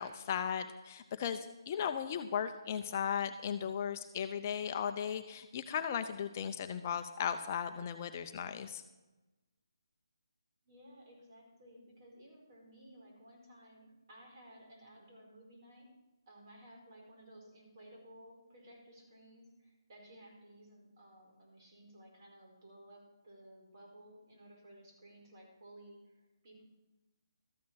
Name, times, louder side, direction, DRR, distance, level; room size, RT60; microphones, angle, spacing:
voice 1, 0.0-8.8, left 8 dB, 30° left, 8 dB, 0.7 m, -36 dB
voice 2, 10.6-15.9 16.3-26.6, right 1 dB, 45° right, -1 dB, 4.9 m, -57 dB
13.5 x 8.5 x 5.8 m, 1.1 s
figure-of-eight pair, 150°, 2 cm